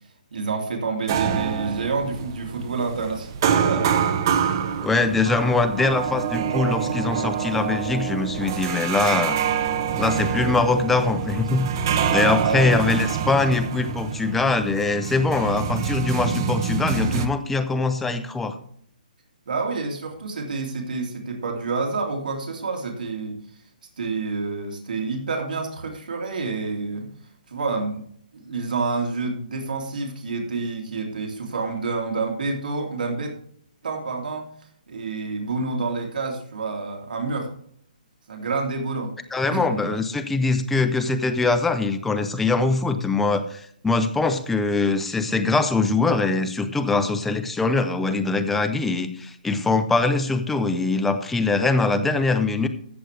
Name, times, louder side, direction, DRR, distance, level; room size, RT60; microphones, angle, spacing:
voice 1, 0.3-3.9 12.4-12.7 19.5-23.4 24.0-27.1 27.5-28.1 28.3-33.3 33.8-34.5 34.9-37.5 38.3-39.1 39.5-39.8, right 4 dB, 75° right, 1 dB, 3.2 m, -28 dB
sound 1, 1.1-17.3, right 7 dB, 30° right, 0.7 m, -26 dB
voice 2, 4.8-9.4 10.0-11.7 12.1-18.6 39.3-52.7, left 3 dB, 5° left, 8 dB, 0.5 m, -22 dB
14.0 x 7.7 x 3.4 m, 0.62 s
hypercardioid pair, 170°, 5 cm